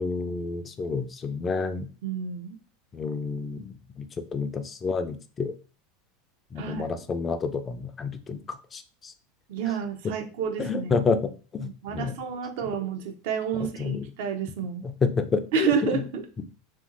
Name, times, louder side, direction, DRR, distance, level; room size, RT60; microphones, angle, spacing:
voice 1, 0.0-1.9 2.9-4.0 4.3-5.5 6.5-9.1 10.6-12.1 13.6-14.0 14.8-16.0 16.4-16.5, left 4 dB, 25° left, 9 dB, 0.3 m, -29 dB
voice 2, 1.8-2.6 6.6-6.9 9.5-11.0 11.6-14.8 15.5-16.4, right 6 dB, 65° right, 6 dB, 0.5 m, -30 dB
2.8 x 2.6 x 2.5 m, 0.37 s
hypercardioid pair, 95°, 0 cm